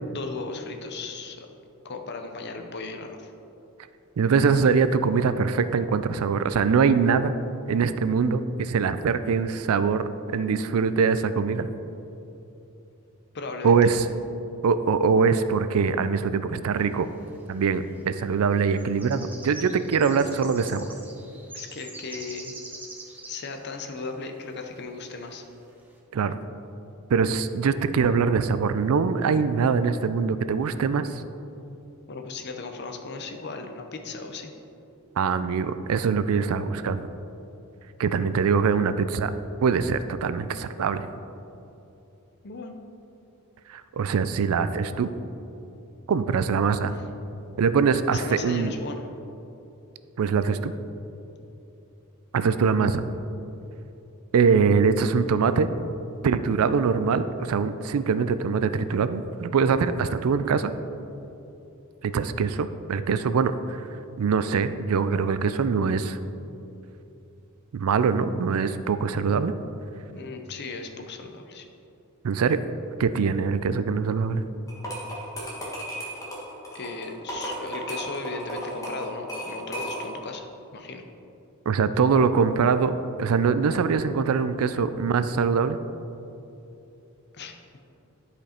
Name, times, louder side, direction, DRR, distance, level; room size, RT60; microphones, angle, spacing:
voice 1, 0.1-1.5 1.8-3.3 13.3-14.0 21.5-22.5 23.3-25.4 32.1-34.5 42.4-42.8 48.1-49.1 70.1-71.7 76.7-81.0 87.3-87.6, left 3 dB, 50° left, 5 dB, 0.7 m, -36 dB
voice 2, 4.2-7.3 7.7-10.0 10.3-11.7 13.6-14.0 14.6-17.1 17.5-20.9 26.1-26.3 27.1-31.2 35.2-37.1 38.0-39.3 39.6-41.1 43.7-45.1 46.1-46.9 47.6-48.7 50.2-50.7 52.3-53.0 54.3-55.7 56.2-60.7 62.0-63.8 64.2-66.2 67.7-69.5 72.2-72.6 73.0-74.4 81.7-85.8, right 5 dB, 70° right, 12 dB, 0.4 m, -23 dB
sound 1, 17.1-17.2 18.0-18.2 18.5-23.5 23.8-23.9 24.3-24.4 25.2-25.3 25.7-25.9, right 2 dB, 10° right, 0.9 m, -43 dB
sound 2, 74.7-80.3, equal, 15° left, 1.4 m, -35 dB
11.0 x 5.1 x 4.3 m, 2.8 s
head